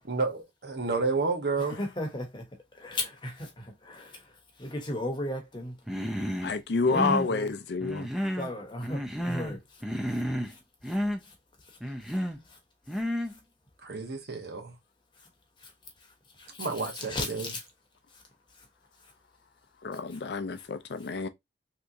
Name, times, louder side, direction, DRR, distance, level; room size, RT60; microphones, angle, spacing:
voice 1, 0.1-1.8 13.8-14.7 16.6-17.5, right 4 dB, 60° right, 0.8 m, -30 dB
voice 2, 1.6-2.4 2.7-5.8 6.9-7.5 8.4-9.8 10.1-10.2 10.5-10.6 10.9-11.0 11.2-11.3 11.7-12.2 12.5-12.6 15.6-15.7 16.4-17.6 18.1-18.2 18.6-18.7, left 1 dB, 25° left, 0.9 m, -36 dB
Human voice, 5.9-6.5 6.8-7.3 7.8-8.5 8.8-9.6 9.8-10.5 10.8-11.2 11.8-12.4 12.9-13.3, equal, 5° right, 0.4 m, -31 dB
voice 3, 6.4-8.1 19.8-21.3, left 4 dB, 65° left, 0.4 m, -29 dB
3.5 x 2.9 x 2.6 m
head